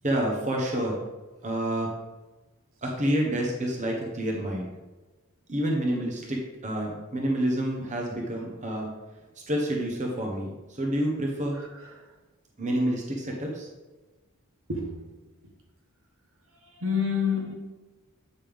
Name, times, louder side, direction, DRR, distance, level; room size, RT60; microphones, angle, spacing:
voice 1, 0.0-1.0 1.4-1.9 2.8-4.7 5.5-8.9 9.5-11.6 12.6-13.7, right 1 dB, 35° right, 1.1 m, -28 dB
voice 2, 14.7-15.0 16.8-17.5, left 6 dB, 65° right, 1.4 m, -27 dB
8.7 x 5.5 x 3.5 m
head